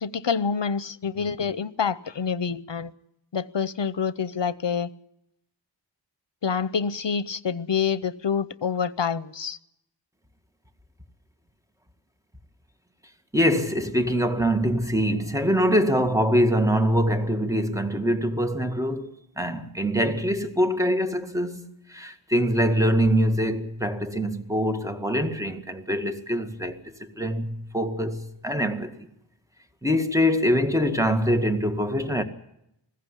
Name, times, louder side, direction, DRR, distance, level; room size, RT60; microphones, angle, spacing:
voice 1, 0.0-2.9 3.3-4.9 6.4-9.6, left 6 dB, 70° left, 0.8 m, -27 dB
voice 2, 13.3-29.0 29.8-32.2, equal, 5° right, 2.0 m, -24 dB
20.5 x 15.5 x 9.9 m
wide cardioid pair, 40°, 45 cm